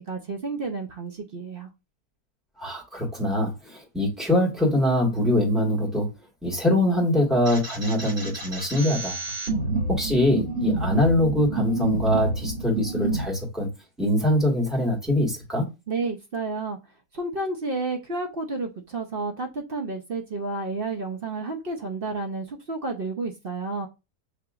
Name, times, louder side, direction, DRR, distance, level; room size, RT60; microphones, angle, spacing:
voice 1, 0.0-1.7 15.9-16.8 17.1-23.9, right 3 dB, 55° right, 0.7 m, -31 dB
voice 2, 2.6-6.1 6.4-9.2 9.9-13.7 14.0-15.7, left 1 dB, ahead, 1.5 m, -23 dB
sound 1, 7.5-13.2, right 2 dB, 70° right, 3.5 m, -28 dB
6.8 x 2.9 x 2.4 m
omnidirectional pair, 1.6 m